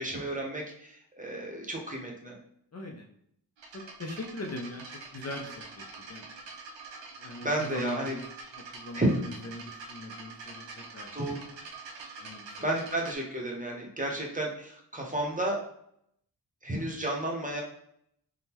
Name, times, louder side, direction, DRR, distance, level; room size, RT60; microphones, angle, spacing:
voice 1, 0.0-2.4 7.4-8.2 8.9-9.1 11.1-11.4 12.6-15.6 16.6-17.6, right 1 dB, 20° right, -1 dB, 0.7 m, -32 dB
voice 2, 2.7-3.0 3.7-4.8 5.1-6.2 7.2-8.2 8.6-11.1 12.2-12.5, left 2 dB, 40° left, 1 dB, 0.5 m, -40 dB
sound 1, 3.6-13.2, right 4 dB, 85° right, 0.6 m, -45 dB
3.5 x 2.1 x 2.9 m, 0.71 s
wide cardioid pair, 90°, 43 cm